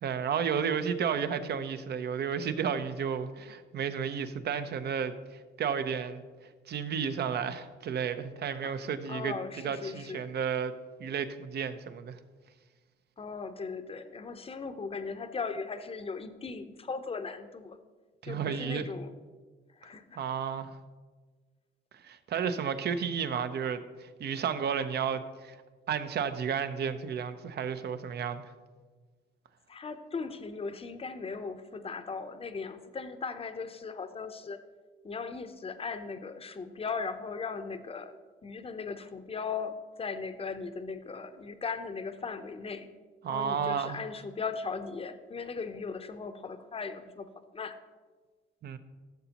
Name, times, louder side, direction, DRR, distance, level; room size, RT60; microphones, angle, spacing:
voice 1, 0.0-5.1 5.6-6.2 6.7-10.7 11.0-12.2 18.2-18.9 20.2-20.8 22.0-25.5 25.9-28.5 43.2-44.0 48.6-48.8, right 7 dB, 55° right, 11 dB, 0.7 m, -32 dB
voice 2, 9.1-10.3 13.2-17.8 18.2-19.1 19.8-20.2 29.7-34.6 35.0-38.1 38.4-42.9 43.3-47.3 47.5-47.8, left 5 dB, 30° left, 10 dB, 0.7 m, -38 dB
14.0 x 6.9 x 2.9 m, 1.4 s
cardioid pair, 90°, 20 cm